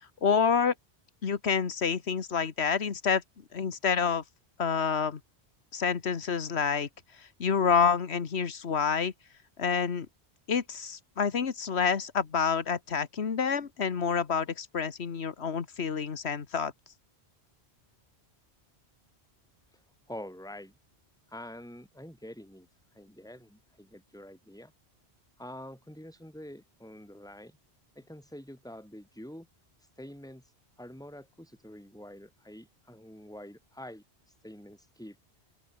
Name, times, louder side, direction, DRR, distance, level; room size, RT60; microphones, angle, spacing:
voice 1, 0.2-0.7 1.2-3.2 3.5-4.2 4.6-5.2 5.7-6.9 7.4-9.1 9.6-10.1 10.5-16.7, left 6 dB, 75° left, 1.7 m, -28 dB
voice 2, 20.1-20.8 21.3-24.7 25.4-27.6 27.9-29.5 29.8-35.2, left 1 dB, 5° left, 4.4 m, -46 dB
open air
omnidirectional pair, 1.1 m